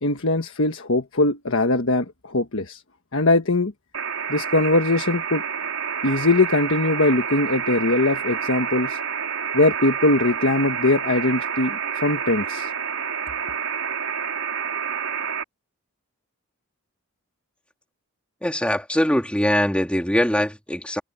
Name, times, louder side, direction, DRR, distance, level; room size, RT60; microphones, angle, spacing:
voice 1, 0.0-2.8 3.1-3.7 4.3-5.4 6.0-9.0 9.5-12.7, left 2 dB, 60° left, 1.4 m, -21 dB
sound 1, 3.9-15.4, right 7 dB, 75° right, 4.5 m, -28 dB
voice 2, 18.4-21.0, equal, 5° left, 2.9 m, -22 dB
head